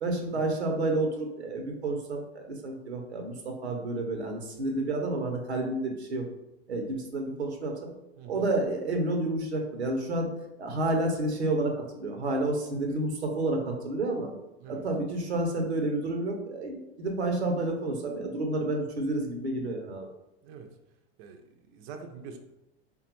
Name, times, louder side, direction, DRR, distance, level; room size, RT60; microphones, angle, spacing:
voice 1, 0.0-6.2 6.7-7.9 8.3-10.3 10.6-14.3 14.7-20.1, right 2 dB, 90° right, 3 dB, 0.7 m, -30 dB
voice 2, 8.2-8.5 14.6-14.9 20.4-20.7 21.2-22.4, right 5 dB, 45° right, 5 dB, 0.5 m, -45 dB
3.5 x 2.2 x 2.9 m, 0.91 s
hypercardioid pair, 90°, 32 cm